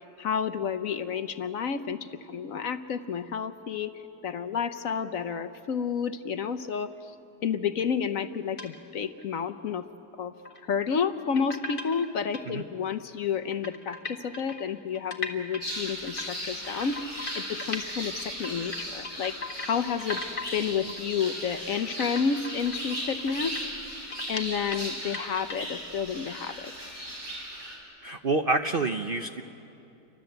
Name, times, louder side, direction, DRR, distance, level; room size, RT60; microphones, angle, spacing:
voice 1, 0.2-3.9 4.2-7.1 7.4-9.8 10.2-10.3 10.6-17.0 17.4-19.4 19.6-20.2 20.5-23.5 24.3-26.7, left 6 dB, 60° left, 10 dB, 1.1 m, -30 dB
sound 1, 8.6-8.8 9.2-9.3 10.4-10.6 11.3-12.4 12.9-13.0 13.2-13.3 13.5-17.9 18.2-19.7 20.0-20.6 20.9-21.0 21.5-21.7 22.0-24.9 25.1-25.7, left 2 dB, 30° left, 1.8 m, -38 dB
sound 2, 15.6-27.8, equal, 25° right, 5.4 m, -37 dB
voice 2, 28.0-29.4, right 3 dB, 50° right, 6 dB, 0.7 m, -27 dB
29.0 x 24.5 x 8.0 m, 2.7 s
omnidirectional pair, 1.7 m